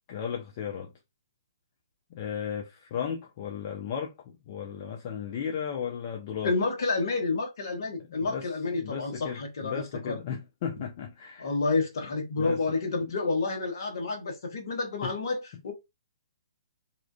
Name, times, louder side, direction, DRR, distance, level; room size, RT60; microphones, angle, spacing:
voice 1, 0.1-0.9 2.1-6.5 8.1-8.5 8.8-11.5 12.4-12.6 13.1-13.2 15.0-15.1, left 7 dB, 40° left, 0.4 m, -35 dB
voice 2, 6.4-10.2 11.4-15.7, left 3 dB, 55° left, 0.9 m, -29 dB
2.4 x 2.3 x 2.2 m
figure-of-eight pair, 125°, 2 cm